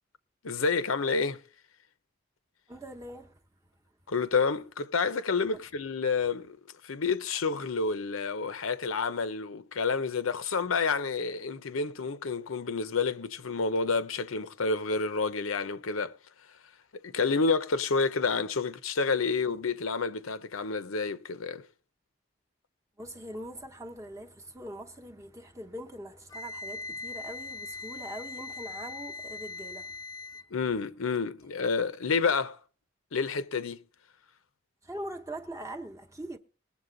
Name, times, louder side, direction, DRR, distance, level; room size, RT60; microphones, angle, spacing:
voice 1, 0.4-1.4 4.1-6.6 6.8-16.1 17.0-21.6 30.5-32.6 33.1-33.8, left 4 dB, 80° left, 0.7 m, -29 dB
voice 2, 2.7-3.4 5.5-5.6 23.0-30.0 34.8-36.4, right 1 dB, 15° right, 0.9 m, -42 dB
Wind instrument woodwind instrument, 26.3-30.5, left 3 dB, 20° left, 0.4 m, -40 dB
21.0 x 7.4 x 3.9 m
head